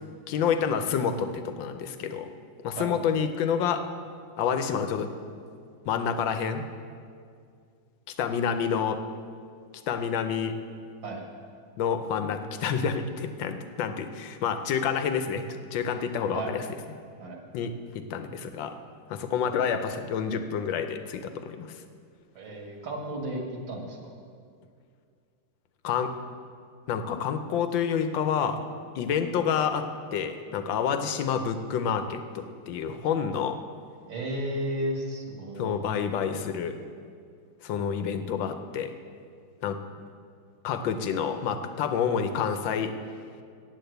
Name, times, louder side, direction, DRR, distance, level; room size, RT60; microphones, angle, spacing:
voice 1, 0.3-2.3 2.6-3.8 4.4-5.1 5.9-6.6 8.2-9.0 9.9-10.5 11.8-15.4 15.7-16.6 17.5-18.7 19.1-21.8 25.8-26.1 26.9-28.6 28.9-29.9 30.1-33.6 35.6-36.8 37.6-38.9 39.6-39.8 40.6-42.9, left 7 dB, 75° left, 8 dB, 1.4 m, -28 dB
voice 2, 22.3-24.1 34.1-35.8, right 1 dB, 75° right, 1 dB, 2.4 m, -33 dB
8.6 x 8.5 x 7.9 m, 2.2 s
omnidirectional pair, 2.1 m